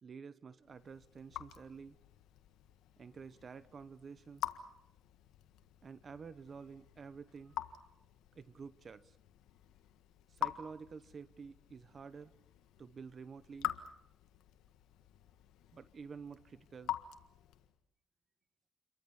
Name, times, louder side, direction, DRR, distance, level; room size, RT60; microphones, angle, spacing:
voice 1, 0.0-2.0 3.0-4.5 5.8-7.8 8.3-9.2 10.3-12.3 12.8-13.7 15.7-17.0, right 5 dB, 45° right, 15 dB, 0.9 m, -50 dB
Raindrop / Drip, 0.6-17.8, left 12 dB, 90° left, 1.6 m, -46 dB
29.0 x 23.5 x 7.1 m, 0.77 s
cardioid pair, 90°, 0 cm